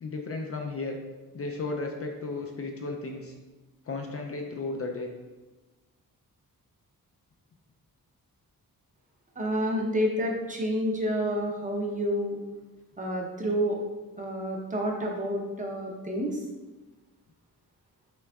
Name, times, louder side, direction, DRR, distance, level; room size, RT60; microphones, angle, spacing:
voice 1, 0.0-1.0 1.3-3.3 3.9-5.1, left 3 dB, 40° left, 2 dB, 0.5 m, -34 dB
voice 2, 9.4-12.4 13.0-13.8 14.2-16.5, equal, 20° right, 0 dB, 0.7 m, -29 dB
6.0 x 3.4 x 2.3 m, 1.2 s
wide cardioid pair, 120°, 36 cm